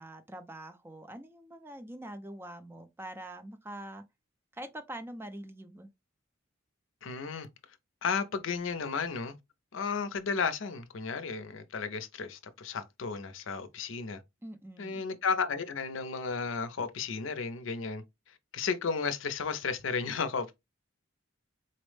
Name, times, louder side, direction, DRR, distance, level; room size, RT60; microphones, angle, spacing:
voice 1, 0.0-4.0 4.5-5.9 14.4-15.0, right 1 dB, 10° right, 0.4 m, -44 dB
voice 2, 7.0-7.5 8.0-9.3 9.7-14.2 14.8-20.5, left 5 dB, 75° left, 0.5 m, -33 dB
4.1 x 2.0 x 3.1 m
head